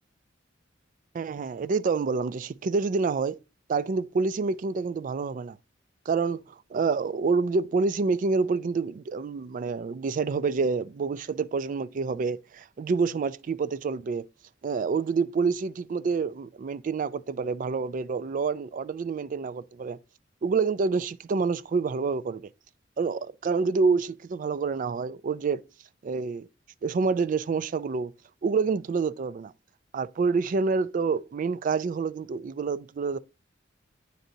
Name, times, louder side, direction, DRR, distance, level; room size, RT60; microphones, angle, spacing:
voice 1, 1.1-3.4 3.7-5.6 6.1-6.4 6.7-14.3 14.6-20.0 20.4-22.4 23.0-25.6 26.0-26.5 26.8-28.1 28.4-29.5 29.9-33.2, right 4 dB, 45° right, 0.3 m, -27 dB
10.0 x 3.9 x 2.7 m
head